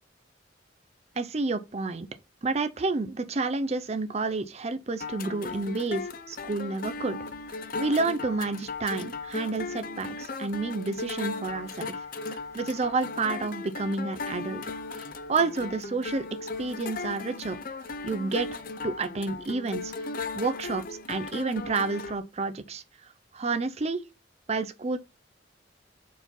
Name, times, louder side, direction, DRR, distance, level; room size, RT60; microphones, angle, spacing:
voice 1, 1.2-2.1 2.4-7.2 7.8-12.0 12.3-14.6 15.3-17.6 18.0-18.5 18.8-19.9 20.3-22.8 23.3-24.0 24.5-25.0, right 3 dB, 35° right, 0.5 m, -30 dB
sound 1, 5.0-22.2, left 4 dB, 50° left, 0.6 m, -37 dB
4.6 x 4.3 x 5.3 m
head